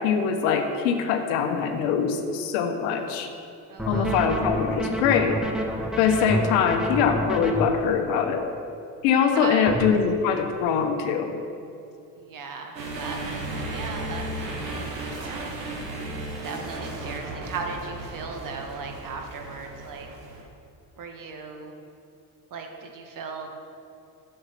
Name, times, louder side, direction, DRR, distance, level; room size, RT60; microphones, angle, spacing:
voice 1, 0.0-3.3 3.9-5.4 6.0-8.5 9.0-11.3, left 7 dB, 65° left, 6 dB, 1.0 m, -23 dB
voice 2, 3.7-4.2 9.2-9.8 12.2-15.6 16.4-20.1 21.0-21.8 22.5-23.5, right 4 dB, 40° right, 3 dB, 1.3 m, -37 dB
sound 1, 3.8-7.6 9.7-9.9, right 1 dB, ahead, 0.9 m, -28 dB
sound 2, 12.8-20.4, right 2 dB, 80° right, 1.3 m, -35 dB
7.9 x 5.7 x 5.7 m, 2.7 s
hypercardioid pair, 60°, 49 cm